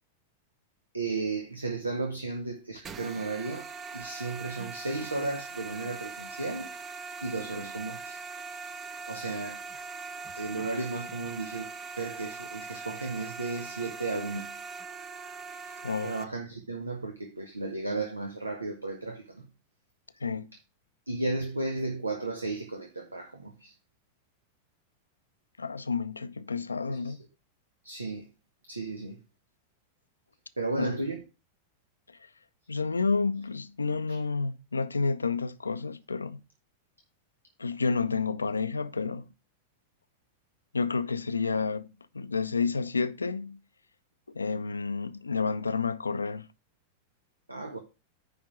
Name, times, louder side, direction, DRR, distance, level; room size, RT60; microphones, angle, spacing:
voice 1, 0.9-6.7 7.2-8.2 9.1-9.6 10.3-14.6 15.5-15.7 16.0-19.5 21.1-23.7 26.9-27.2 27.8-28.3 28.7-29.2 30.6-31.2 34.1-34.2 47.5-47.8, right 3 dB, 80° right, 1.0 m, -34 dB
sound 1, 2.8-16.2, right 4 dB, 25° right, 0.8 m, -41 dB
voice 2, 20.2-20.5 25.6-27.2 30.8-31.0 32.7-36.4 37.6-39.3 40.7-43.6 44.3-46.5, left 4 dB, 75° left, 0.5 m, -30 dB
9.8 x 3.7 x 5.9 m
figure-of-eight pair, 90°, 0 cm